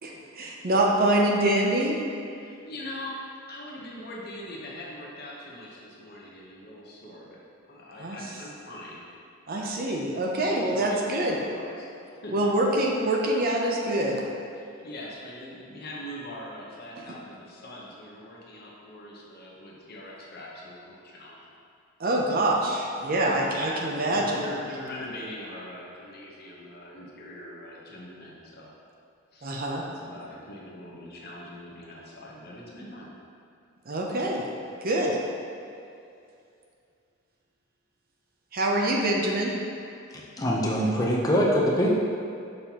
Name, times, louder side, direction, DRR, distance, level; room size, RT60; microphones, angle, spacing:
voice 1, 0.0-2.0 8.0-8.2 9.5-11.4 12.3-14.2 17.0-17.1 22.0-24.5 29.4-29.8 33.9-34.5 34.8-35.2 38.5-39.5, right 1 dB, 45° right, -1 dB, 0.6 m, -25 dB
voice 2, 2.3-3.2 3.5-7.4 7.6-9.0 10.4-11.9 12.2-12.6 14.5-21.5 23.2-23.7 24.1-28.7 29.3-33.1, left 1 dB, 45° left, -4 dB, 1.0 m, -42 dB
voice 3, 40.1-41.9, equal, 15° left, -3 dB, 0.7 m, -24 dB
6.5 x 5.3 x 2.9 m, 2.5 s
head